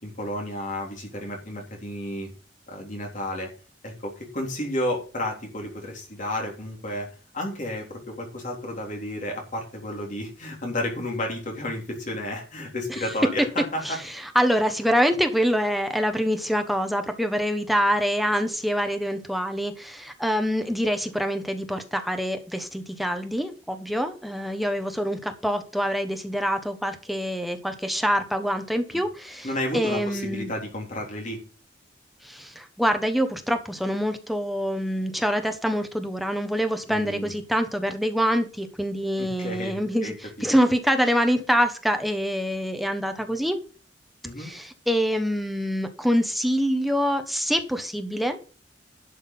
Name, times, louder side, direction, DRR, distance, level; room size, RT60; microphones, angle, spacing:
voice 1, 0.0-2.3 2.7-3.5 3.8-14.0 28.9-29.0 29.4-31.4 36.9-37.3 39.2-40.1 44.2-44.5, left 1 dB, 45° left, 0 dB, 3.5 m, -32 dB
voice 2, 14.3-29.5 29.7-30.5 32.2-43.6 44.4-48.4, equal, ahead, 6 dB, 1.2 m, -25 dB
11.5 x 6.4 x 5.4 m, 0.37 s
head